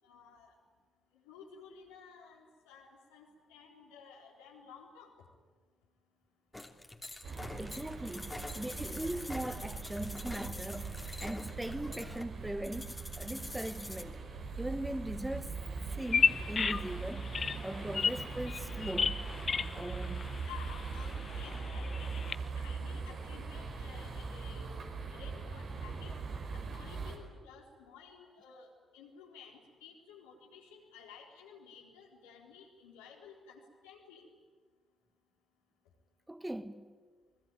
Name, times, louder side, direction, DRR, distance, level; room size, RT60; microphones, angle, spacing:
voice 1, 0.0-0.5 1.2-5.1 20.4-24.7 25.1-26.1 26.7-34.3, left 6 dB, 80° left, 4.1 m, -54 dB
sound 1, 6.5-14.0, left 2 dB, 20° left, 2.9 m, -46 dB
sound 2, 7.2-27.2, right 4 dB, 60° right, 4.9 m, -41 dB
voice 2, 7.6-14.2 14.6-15.5 16.0-17.3 17.6-19.2 19.8-20.3 36.3-36.9, right 1 dB, 10° right, 1.6 m, -40 dB
Bird vocalization bird call bird song, 16.0-22.3, left 5 dB, 50° left, 1.1 m, -34 dB
29.0 x 21.0 x 9.2 m
hypercardioid pair, 40°, 0 cm